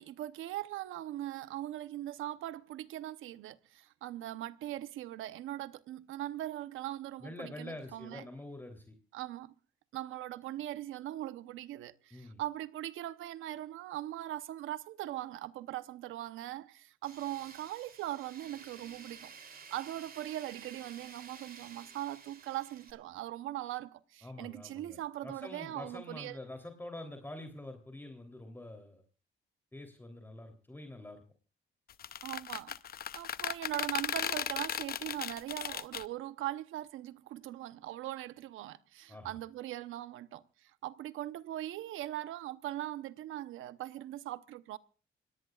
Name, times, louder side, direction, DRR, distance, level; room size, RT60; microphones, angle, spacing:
voice 1, 0.0-8.2 9.1-9.5 9.9-26.4 32.2-32.8 33.1-44.8, right 14 dB, 85° right, 0.9 m, -40 dB
voice 2, 7.2-8.9 12.1-12.4 24.2-29.0 29.7-31.2 39.1-39.4, left 1 dB, 10° left, 3.2 m, -46 dB
Tools, 17.0-22.9, right 6 dB, 50° right, 3.2 m, -52 dB
sound 1, 31.9-36.0, left 9 dB, 50° left, 0.7 m, -36 dB
26.5 x 18.5 x 2.4 m
cardioid pair, 90°, 20 cm